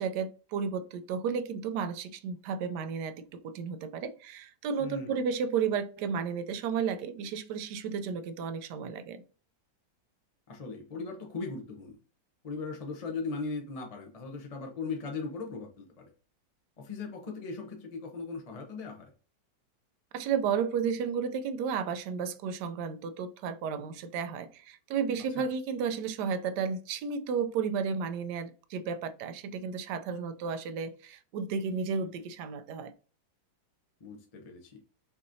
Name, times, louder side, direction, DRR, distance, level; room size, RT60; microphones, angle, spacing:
voice 1, 0.0-9.2 20.1-32.9, right 6 dB, 75° right, 1.1 m, -33 dB
voice 2, 4.8-5.2 10.5-12.0 12.4-16.1 16.8-19.1 25.4-25.5 34.0-34.8, left 4 dB, 30° left, 0.7 m, -38 dB
5.7 x 3.0 x 2.7 m
omnidirectional pair, 1.9 m